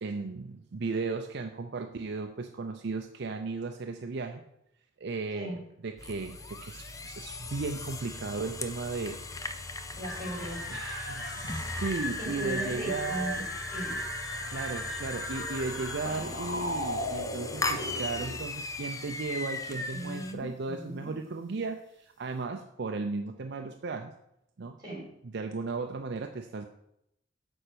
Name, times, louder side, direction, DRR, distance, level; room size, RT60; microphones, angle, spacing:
voice 1, 0.0-4.4 5.0-9.2 10.7-13.5 14.5-24.1 24.6-24.8 25.2-26.7, right 4 dB, 60° right, 5 dB, 0.5 m, -35 dB
sound 1, 6.0-20.3, left 3 dB, 20° left, 0.6 m, -39 dB
voice 2, 9.9-10.6 12.2-13.4 13.7-13.9 19.9-21.1 24.8-25.1, right 1 dB, 25° right, -2 dB, 3.8 m, -37 dB
sound 2, 10.0-18.4, left 1 dB, 70° left, 2.2 m, -37 dB
8.8 x 4.4 x 6.8 m, 0.79 s
head